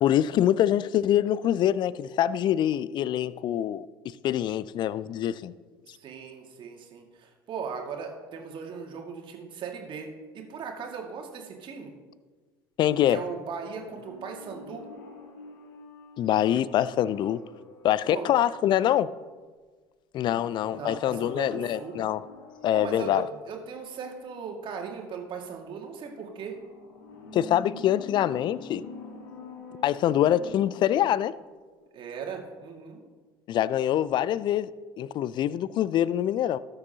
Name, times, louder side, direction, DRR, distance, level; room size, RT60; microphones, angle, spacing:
voice 1, 0.0-3.9 4.2-5.5 12.8-13.2 16.2-17.4 17.8-19.1 20.1-22.2 22.6-23.2 27.3-28.8 29.8-31.3 33.5-34.7 35.0-36.6, left 11 dB, 40° left, 19 dB, 0.4 m, -24 dB
voice 2, 5.9-11.9 13.1-14.9 18.0-18.3 20.3-21.9 22.7-26.6 31.9-33.0, right 6 dB, 45° right, 2 dB, 2.0 m, -38 dB
sound 1, 13.7-19.4 20.5-23.5 26.3-31.5 31.8-31.9, left 3 dB, 65° left, 1.6 m, -47 dB
18.0 x 6.9 x 2.9 m, 1.4 s
figure-of-eight pair, 60°, 12 cm